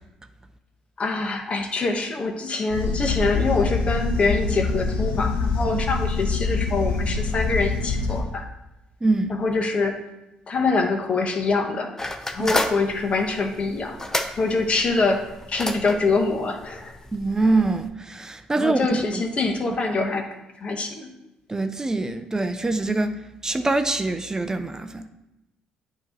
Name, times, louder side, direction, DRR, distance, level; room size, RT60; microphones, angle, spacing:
voice 1, 1.0-8.4 9.3-10.0 10.5-11.9 12.3-14.0 14.4-15.2 15.5-16.9 18.6-20.3 20.6-21.1, left 3 dB, 45° left, 1.1 m, -24 dB
sound 1, 2.7-8.2, left 4 dB, 80° left, 0.9 m, -25 dB
voice 2, 9.0-9.3 12.4-12.5 17.1-18.8 19.1-19.2 21.5-25.1, right 2 dB, 20° right, 0.5 m, -24 dB
sound 2, 12.0-17.9, left 1 dB, 15° left, 0.7 m, -32 dB
8.5 x 3.0 x 5.1 m
supercardioid pair, 65°, 3 cm